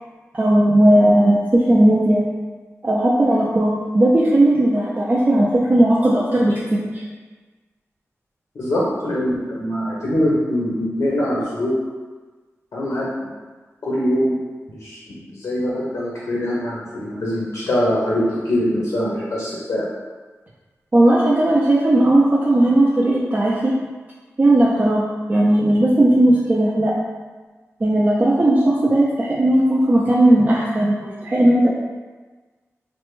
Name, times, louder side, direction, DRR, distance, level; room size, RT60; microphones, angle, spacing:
voice 1, 0.3-2.2 2.8-7.0 20.9-23.7 24.4-25.0 25.3-26.9 27.8-31.7, right 1 dB, 30° right, -6 dB, 0.4 m, -16 dB
voice 2, 8.5-11.7 12.7-13.1 13.8-14.4 14.7-19.9, equal, 75° left, -6 dB, 0.6 m, -23 dB
3.3 x 2.1 x 3.0 m, 1.3 s
wide cardioid pair, 110°, 5 cm